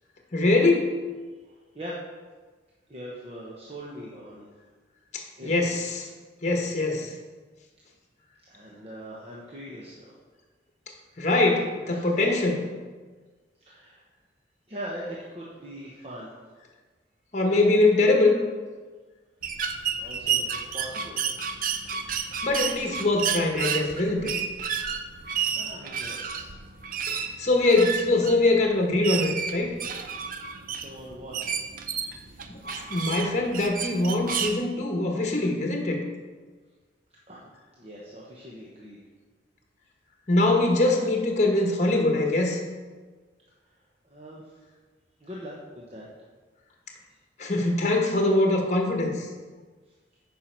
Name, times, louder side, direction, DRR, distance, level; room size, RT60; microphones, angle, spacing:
voice 1, 0.3-0.9 5.1-6.1 6.4-7.1 11.2-12.6 17.3-18.4 22.4-24.3 27.1-29.7 32.5-36.0 40.3-42.6 47.4-49.3, left 2 dB, 40° left, 2 dB, 1.1 m, -23 dB
voice 2, 2.9-4.5 5.4-5.5 8.4-10.1 11.9-12.1 13.7-14.0 14.7-16.3 19.9-21.2 25.4-26.5 30.6-31.5 37.3-39.0 44.0-44.5 45.2-46.1, equal, 30° right, -5 dB, 1.1 m, -41 dB
sound 1, 19.4-34.6, right 7 dB, 45° right, 0.5 m, -31 dB
9.3 x 5.8 x 4.5 m, 1.4 s
head